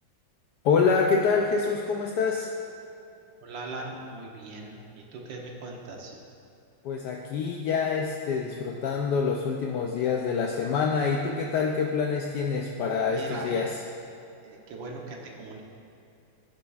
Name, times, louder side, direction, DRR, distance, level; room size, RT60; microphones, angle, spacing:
voice 1, 0.6-2.5 6.8-13.7, left 5 dB, 70° left, 1 dB, 1.1 m, -26 dB
voice 2, 3.4-6.2 13.0-13.6 14.4-15.6, right 2 dB, 85° right, 0 dB, 1.7 m, -39 dB
16.0 x 6.6 x 2.4 m, 2.8 s
omnidirectional pair, 2.0 m